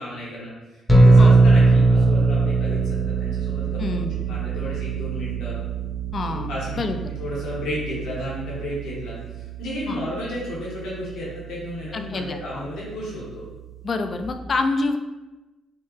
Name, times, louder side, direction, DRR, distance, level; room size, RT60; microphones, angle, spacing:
voice 1, 0.0-2.8 3.2-4.0 4.3-5.6 6.5-6.8 7.2-13.4, left 1 dB, 80° left, -7 dB, 1.3 m, -33 dB
sound 1, 0.9-14.3, right 3 dB, 5° right, 0.7 m, -22 dB
voice 2, 3.8-4.1 6.1-6.5 6.8-7.1 9.9-10.0 11.9-12.6 13.8-15.0, left 3 dB, 45° left, 7 dB, 0.4 m, -27 dB
4.4 x 2.4 x 3.2 m, 1.1 s
cardioid pair, 90°, 0 cm